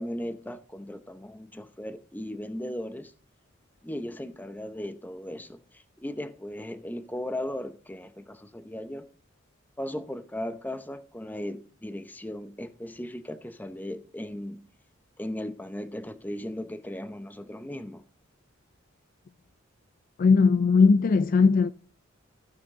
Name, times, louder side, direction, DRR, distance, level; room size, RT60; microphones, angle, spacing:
voice 1, 0.0-3.1 3.8-9.1 9.8-14.6 15.2-18.0, left 1 dB, 10° left, 0.7 m, -37 dB
voice 2, 20.2-21.7, left 4 dB, 45° left, 0.3 m, -19 dB
14.5 x 5.9 x 3.7 m
head